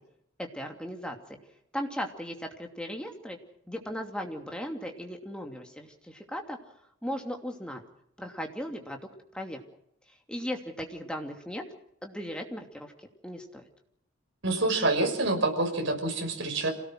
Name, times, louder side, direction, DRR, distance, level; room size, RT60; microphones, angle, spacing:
voice 1, 0.4-1.2 1.7-3.4 3.7-6.6 7.0-7.8 8.2-9.0 9.3-9.6 10.3-11.6 12.0-12.9 13.2-13.6, equal, 5° left, 3 dB, 2.8 m, -37 dB
voice 2, 14.4-16.7, right 2 dB, 60° right, 3 dB, 5.9 m, -27 dB
27.0 x 18.0 x 6.4 m, 0.75 s
head